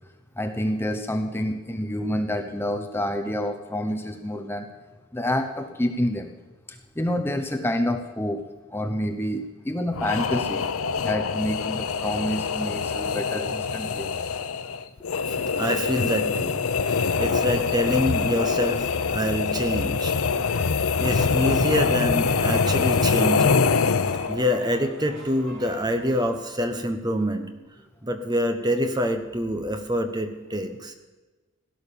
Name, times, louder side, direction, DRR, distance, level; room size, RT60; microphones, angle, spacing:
voice 1, 0.4-4.7 5.1-6.3 6.7-8.4 8.7-10.7 11.0-14.1 14.4-14.5, left 1 dB, 10° left, 5 dB, 0.9 m, -28 dB
sound 1, 9.9-24.5, left 5 dB, 90° left, 0.7 m, -24 dB
voice 2, 15.6-16.6 16.9-20.1 21.0-23.6 24.3-27.5 28.0-30.9, equal, 20° right, 7 dB, 1.1 m, -26 dB
sound 2, 20.4-26.2, right 1 dB, 60° right, 4.4 m, -44 dB
17.0 x 11.0 x 7.0 m, 1.2 s
head